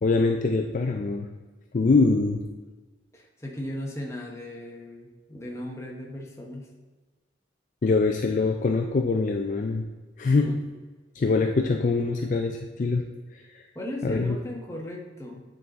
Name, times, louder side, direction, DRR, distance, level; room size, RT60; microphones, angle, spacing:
voice 1, 0.0-1.3 1.7-2.5 7.8-9.9 10.2-10.5 11.2-13.0 14.0-14.4, left 3 dB, 45° left, 3 dB, 0.4 m, -23 dB
voice 2, 3.1-6.7 10.2-10.6 13.7-15.4, left 1 dB, 15° left, 0 dB, 0.9 m, -37 dB
9.0 x 3.9 x 4.0 m, 1.3 s
head